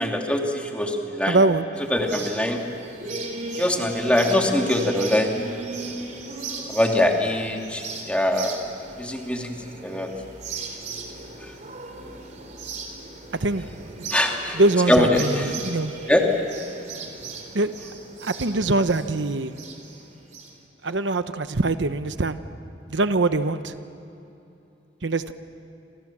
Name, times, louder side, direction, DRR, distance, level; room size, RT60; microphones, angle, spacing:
voice 1, 0.0-1.4 1.9-2.6 3.5-5.3 6.7-8.6 9.0-9.5 9.8-10.1 14.1-14.6 14.9-15.3 16.1-16.2, left 1 dB, 5° left, 1 dB, 2.6 m, -22 dB
voice 2, 1.3-1.6 13.3-14.1 14.5-15.9 17.5-17.7 18.2-19.5 20.8-22.4 22.9-23.7 25.0-25.3, right 2 dB, 80° right, 11 dB, 1.0 m, -23 dB
sound 1, 1.7-20.5, right 3 dB, 40° right, 3.6 m, -36 dB
30.0 x 26.5 x 7.5 m, 2.8 s
head